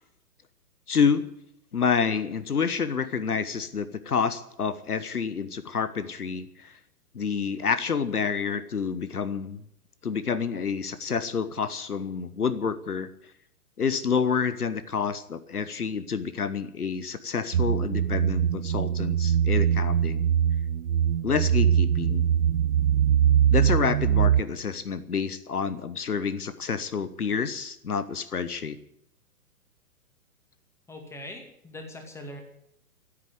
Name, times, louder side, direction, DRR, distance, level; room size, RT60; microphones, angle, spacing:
voice 1, 0.9-1.2 1.7-6.8 7.1-9.6 10.0-13.1 13.8-20.3 21.2-22.3 23.5-28.8, left 6 dB, 75° left, 14 dB, 1.2 m, -28 dB
sound 1, 17.5-24.4, right 9 dB, 65° right, 0.7 m, -22 dB
voice 2, 30.9-32.4, left 1 dB, 5° left, 3 dB, 2.3 m, -41 dB
15.0 x 8.7 x 9.4 m, 0.75 s
figure-of-eight pair, 125°, 45 cm